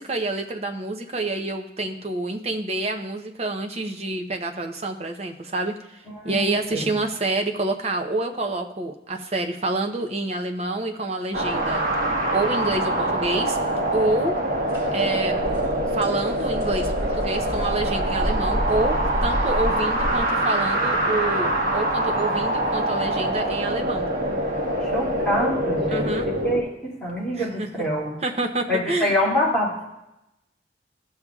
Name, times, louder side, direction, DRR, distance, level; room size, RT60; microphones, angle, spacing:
voice 1, 0.0-11.8 12.3-13.6 13.9-14.4 14.9-15.4 15.9-19.0 19.2-24.1 25.9-26.3 27.3-27.8 28.2-29.1, right 2 dB, 35° right, 4 dB, 0.7 m, -27 dB
voice 2, 6.1-6.9 24.8-28.2 28.7-29.8, equal, 5° left, -8 dB, 2.5 m, -26 dB
sound 1, 11.3-26.6, right 1 dB, 50° right, 1.5 m, -24 dB
sound 2, 14.7-14.8 15.2-20.2, equal, 15° right, 3.7 m, -29 dB
15.0 x 6.8 x 2.4 m, 0.89 s
head